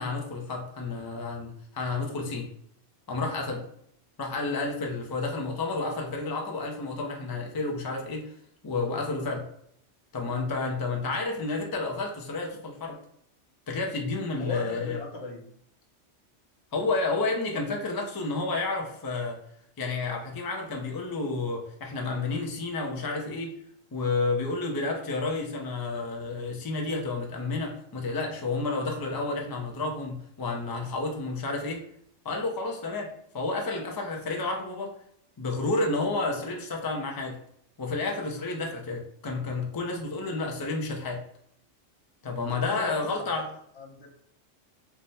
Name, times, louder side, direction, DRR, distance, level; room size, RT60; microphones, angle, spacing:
voice 1, 0.0-2.5 3.1-3.6 4.2-8.3 8.6-9.5 10.1-13.0 13.7-15.0 16.7-19.4 19.8-23.5 23.9-31.8 32.2-34.9 35.4-37.4 37.8-41.2 42.2-43.5, left 3 dB, 35° left, 1 dB, 0.4 m, -30 dB
voice 2, 14.3-15.4 42.5-43.5 43.7-44.1, left 2 dB, 65° left, 0 dB, 1.1 m, -39 dB
3.5 x 2.1 x 4.0 m, 0.70 s
omnidirectional pair, 1.2 m